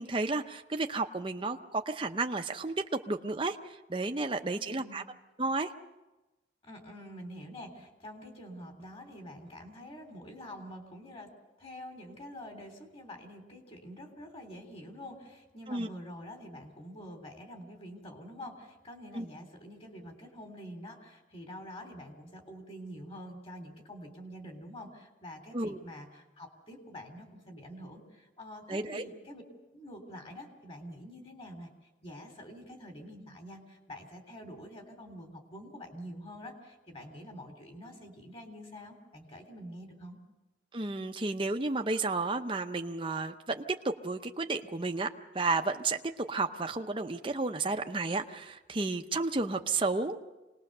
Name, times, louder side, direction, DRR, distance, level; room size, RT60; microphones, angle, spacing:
voice 1, 0.0-5.0 5.4-5.7 15.7-15.9 19.1-19.2 25.5-25.8 28.7-29.0 40.7-45.1 45.3-46.0 46.3-50.2, right 3 dB, 25° right, 4 dB, 0.7 m, -32 dB
voice 2, 4.5-5.1 6.6-11.3 11.6-29.4 29.7-31.7 32.0-40.2, equal, 30° left, 4 dB, 3.5 m, -46 dB
26.5 x 19.5 x 6.7 m, 1.1 s
head